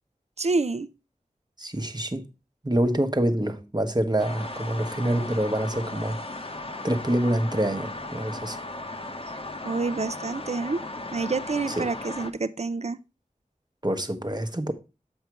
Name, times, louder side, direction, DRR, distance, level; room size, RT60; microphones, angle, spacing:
voice 1, 0.4-0.9 9.6-10.8 11.1-13.0, right 3 dB, 50° right, 0.6 m, -28 dB
voice 2, 1.6-2.2 2.6-8.6 11.8-11.9 13.8-14.7, right 1 dB, 30° right, 1.1 m, -26 dB
sound 1, 4.2-12.3, left 2 dB, 40° left, 1.0 m, -36 dB
7.2 x 5.1 x 4.6 m
wide cardioid pair, 45°, 14 cm